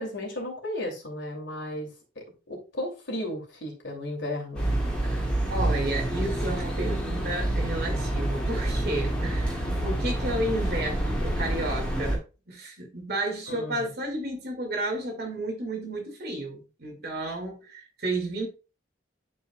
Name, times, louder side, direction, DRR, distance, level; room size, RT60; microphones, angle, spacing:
voice 1, 0.0-1.9 2.2-4.6 13.5-13.9, left 1 dB, 75° left, 2.6 m, -34 dB
sound 1, 4.5-12.2, right 1 dB, 5° left, 2.1 m, -28 dB
voice 2, 5.0-18.5, right 1 dB, 55° right, 2.2 m, -32 dB
11.0 x 4.6 x 2.3 m
head